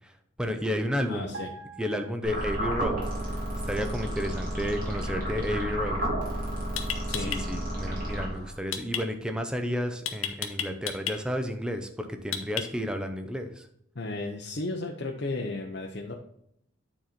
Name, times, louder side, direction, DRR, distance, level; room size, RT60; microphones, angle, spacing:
voice 1, 0.0-1.3 1.8-3.0 3.3-3.4 3.7-6.0 7.2-13.7, equal, 5° right, 5 dB, 0.7 m, -32 dB
voice 2, 1.1-1.5 7.1-7.4 13.9-16.2, left 2 dB, 55° left, 0 dB, 0.8 m, -34 dB
sound 1, 1.3-3.0 3.2-3.5, right 4 dB, 65° right, 2.1 m, -45 dB
sound 2, 2.2-8.7, right 1 dB, 45° right, 2.5 m, -32 dB
sound 3, 6.1-6.3 6.8-7.4 8.7-9.0 10.0-11.2 12.3-12.9, left 9 dB, 90° left, 1.0 m, -31 dB
9.2 x 4.2 x 4.3 m, 0.73 s
head